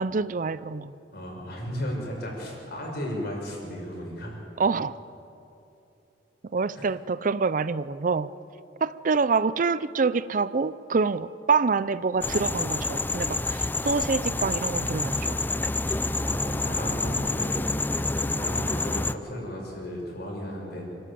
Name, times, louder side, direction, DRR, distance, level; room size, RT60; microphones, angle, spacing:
voice 1, 0.0-0.9 4.6-5.0 6.5-8.3 8.8-15.4 18.2-18.4, right 4 dB, 45° right, 16 dB, 0.5 m, -26 dB
voice 2, 1.1-4.3 6.7-6.9 16.2-20.8, equal, 55° left, -1 dB, 6.0 m, -35 dB
sound 1, 12.2-19.1, left 2 dB, 10° left, 0.4 m, -28 dB
27.5 x 12.5 x 8.5 m, 2.8 s
head